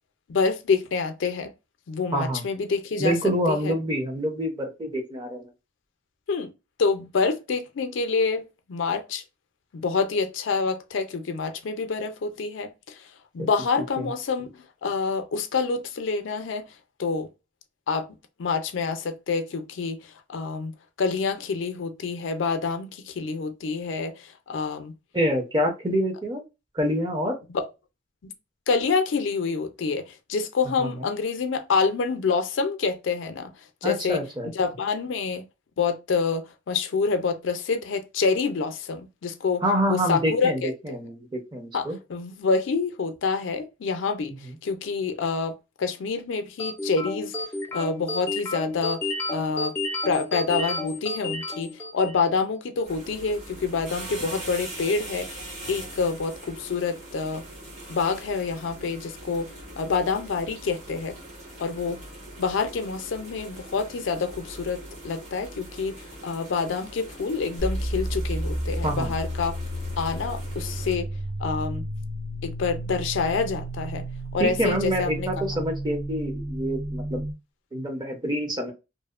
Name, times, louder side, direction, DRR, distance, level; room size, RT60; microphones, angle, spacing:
voice 1, 0.3-1.5 1.9-3.2 3.5-3.7 6.3-6.5 6.8-9.2 9.7-16.7 17.0-17.3 17.9-18.1 18.4-24.9 27.5-27.7 28.2-28.3 28.7-33.5 33.8-35.4 35.8-39.6 39.9-40.7 41.7-45.5 45.8-47.3 47.7-49.7 50.0-55.4 55.7-57.4 57.9-61.2 61.6-62.0 62.4-69.6 70.0-71.1 71.4-71.8 72.4-74.0 74.3-75.3, left 4 dB, 85° left, 0.4 m, -27 dB
voice 2, 2.1-2.4 3.0-5.5 13.4-13.5 14.0-14.1 25.1-26.4 26.7-27.4 30.8-31.1 33.8-34.5 39.6-42.0 68.8-69.1 74.4-77.2 77.7-78.7, equal, 25° right, 0.7 m, -26 dB
sound 1, 46.6-52.3, left 2 dB, 15° left, 0.4 m, -31 dB
sound 2, 52.8-70.9, right 1 dB, 40° right, 1.0 m, -42 dB
sound 3, 67.6-77.3, right 1 dB, 70° right, 0.7 m, -32 dB
2.7 x 2.0 x 2.3 m
head